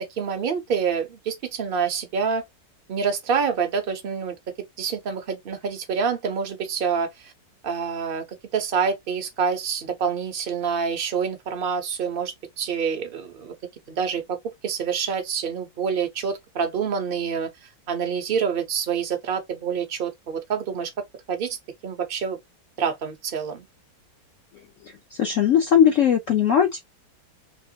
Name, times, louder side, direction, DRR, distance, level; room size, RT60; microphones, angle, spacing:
voice 1, 0.0-2.4 2.9-4.3 4.8-7.3 7.6-8.2 8.5-13.5 13.9-17.5 17.9-21.6 21.8-22.4 22.8-23.7, right 6 dB, 50° right, 0.7 m, -27 dB
voice 2, 24.8-26.8, left 9 dB, 65° left, 0.8 m, -19 dB
3.0 x 2.9 x 2.8 m
omnidirectional pair, 1.9 m